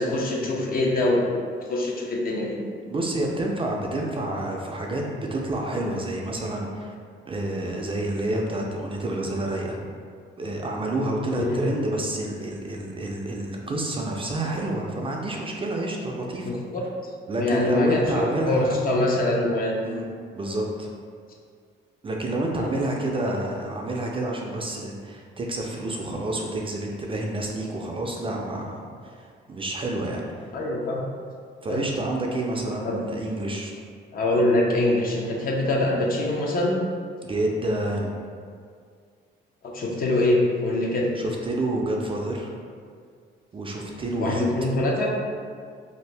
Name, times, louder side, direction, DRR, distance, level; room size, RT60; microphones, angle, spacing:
voice 1, 0.0-1.4 1.7-2.6 11.3-11.6 16.4-16.9 17.4-19.8 22.5-22.7 30.5-31.0 31.7-31.8 32.8-33.0 34.1-36.8 39.6-41.1 44.2-45.1, left 2 dB, 45° left, -1 dB, 0.6 m, -24 dB
voice 2, 2.9-6.9 7.2-9.8 10.4-16.6 17.3-18.8 19.8-20.1 20.3-20.9 22.0-30.2 31.6-33.7 37.2-38.1 41.2-42.5 43.5-44.5, right 1 dB, 25° right, -1 dB, 0.4 m, -29 dB
2.7 x 2.4 x 3.3 m, 2.1 s
cardioid pair, 90°, 20 cm